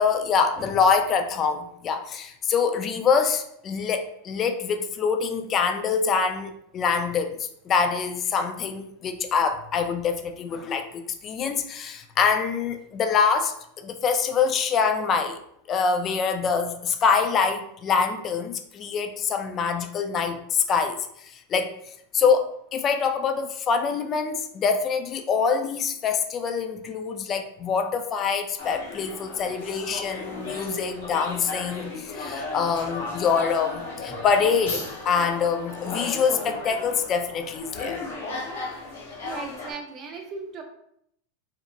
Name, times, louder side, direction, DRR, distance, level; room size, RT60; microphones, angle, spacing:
voice 1, 0.0-15.4 15.7-21.7 22.1-38.0, left 6 dB, 35° left, 5 dB, 0.3 m, -25 dB
sound 1, 28.6-39.7, left 3 dB, 80° left, 0.9 m, -35 dB
voice 2, 39.0-40.6, right 4 dB, 40° right, 2 dB, 0.6 m, -38 dB
2.8 x 2.1 x 2.5 m, 0.72 s
hypercardioid pair, 110°, 0 cm